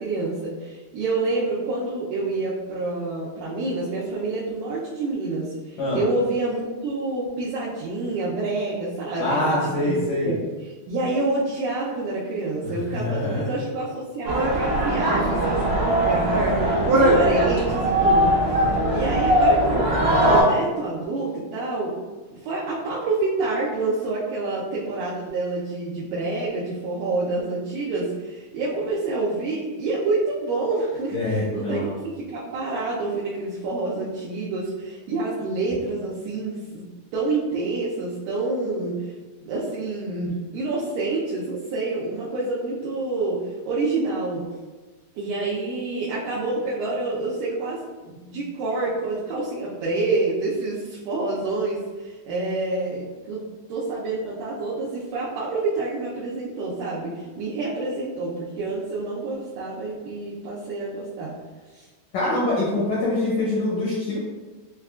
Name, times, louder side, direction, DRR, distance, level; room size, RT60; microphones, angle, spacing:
voice 1, 0.0-10.4 10.9-20.0 20.2-21.9 22.3-36.8 37.1-39.1 39.4-43.4 43.7-44.5 45.2-47.8 48.1-53.4 53.7-61.3 61.7-61.9, right 3 dB, 80° right, -7 dB, 2.2 m, -28 dB
voice 2, 9.2-10.3 12.6-13.5 31.1-31.9 62.1-64.2, left 2 dB, 75° left, -8 dB, 1.6 m, -24 dB
sound 1, 14.2-20.4, right 1 dB, 55° right, 1.5 m, -20 dB
6.3 x 2.3 x 2.3 m, 1.3 s
omnidirectional pair, 4.1 m